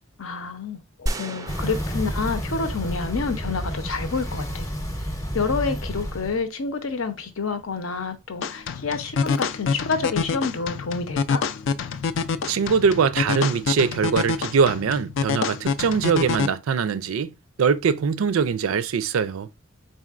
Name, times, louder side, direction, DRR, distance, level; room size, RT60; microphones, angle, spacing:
voice 1, 0.2-4.7 5.3-11.4, left 4 dB, 85° left, 0.7 m, -28 dB
sound 1, 1.1-3.4, right 1 dB, 15° right, 0.3 m, -34 dB
sound 2, 1.5-6.4, equal, 15° left, 0.6 m, -30 dB
sound 3, 8.4-16.5, left 5 dB, 65° left, 0.4 m, -26 dB
voice 2, 12.5-19.5, right 6 dB, 85° right, 0.4 m, -22 dB
4.1 x 3.7 x 2.4 m
head